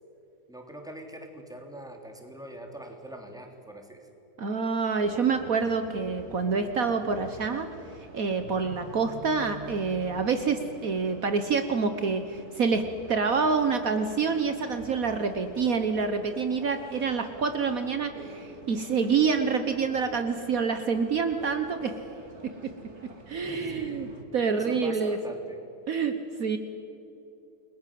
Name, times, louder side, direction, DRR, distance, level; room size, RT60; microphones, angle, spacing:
voice 1, 0.5-4.1 23.4-24.1 24.5-25.6, right 1 dB, ahead, 2 dB, 3.4 m, -42 dB
voice 2, 4.4-7.7 8.1-21.9 23.3-24.1 24.3-25.2 25.9-26.1 26.4-26.6, right 5 dB, 60° right, 8 dB, 1.6 m, -27 dB
sound 1, 5.0-24.2, right 2 dB, 45° right, 3.0 m, -47 dB
30.0 x 21.5 x 7.7 m, 2.9 s
omnidirectional pair, 1.7 m